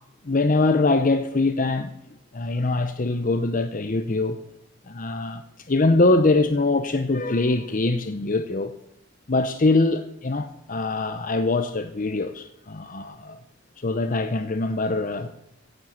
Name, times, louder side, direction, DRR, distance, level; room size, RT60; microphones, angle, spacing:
voice 1, 0.2-1.9 2.3-4.4 4.9-5.4 5.7-8.7 9.3-13.4 13.8-15.3, left 2 dB, 40° left, 0.7 m, -23 dB
16.5 x 7.7 x 7.3 m
head